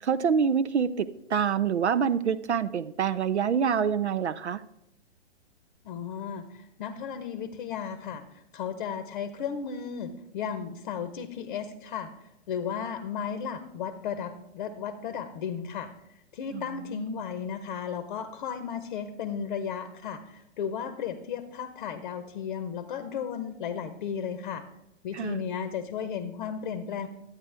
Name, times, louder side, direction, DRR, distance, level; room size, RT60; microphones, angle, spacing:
voice 1, 0.0-4.6 16.5-17.2 25.1-25.4, right 7 dB, 75° right, 13 dB, 0.6 m, -26 dB
voice 2, 5.8-12.1 12.5-15.9 16.3-24.6 25.0-27.1, left 7 dB, 40° left, 10 dB, 0.8 m, -34 dB
10.5 x 9.0 x 3.3 m, 0.84 s
figure-of-eight pair, 120°, 35 cm